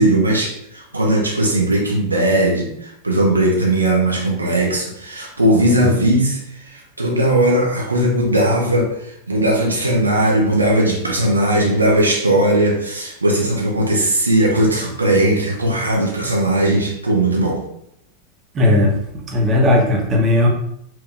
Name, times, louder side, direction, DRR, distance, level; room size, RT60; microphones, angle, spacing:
voice 1, 0.0-17.6, right 1 dB, 80° right, -1 dB, 0.7 m, -18 dB
voice 2, 18.5-19.0 19.3-20.5, left 1 dB, 25° right, -2 dB, 0.9 m, -16 dB
4.4 x 2.8 x 2.4 m, 0.74 s
figure-of-eight pair, 90°, 0 cm